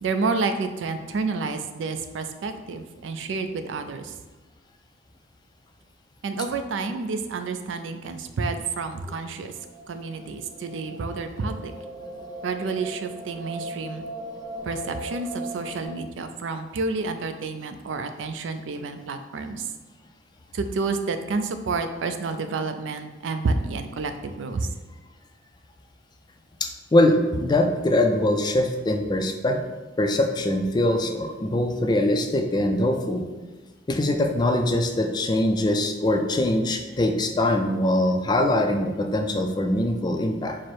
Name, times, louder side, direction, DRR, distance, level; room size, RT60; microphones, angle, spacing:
voice 1, 0.0-4.1 6.2-9.5 9.9-11.7 12.4-14.0 14.6-19.6 20.5-24.7, right 4 dB, 80° right, 8 dB, 0.4 m, -29 dB
sound 1, 9.5-15.9, right 1 dB, 30° right, 0.9 m, -38 dB
voice 2, 26.6-29.6 30.0-33.3 33.9-40.6, left 1 dB, 25° left, 5 dB, 0.3 m, -22 dB
4.6 x 2.0 x 4.4 m, 1.2 s
head